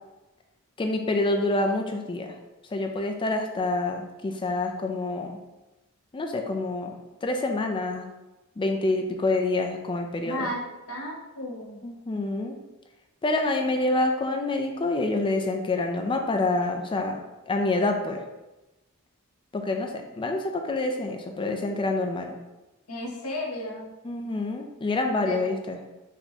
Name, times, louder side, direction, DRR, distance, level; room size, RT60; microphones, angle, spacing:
voice 1, 0.8-2.3 2.7-5.4 6.1-8.1 8.6-10.5 11.8-12.6 13.2-17.2 17.5-18.2 19.5-22.3 24.0-25.8, left 2 dB, 25° left, 4 dB, 0.4 m, -27 dB
voice 2, 10.2-10.6 10.9-11.8 22.9-23.9 25.2-25.6, left 1 dB, 85° left, -1 dB, 0.9 m, -34 dB
3.4 x 2.9 x 4.0 m, 1.0 s
head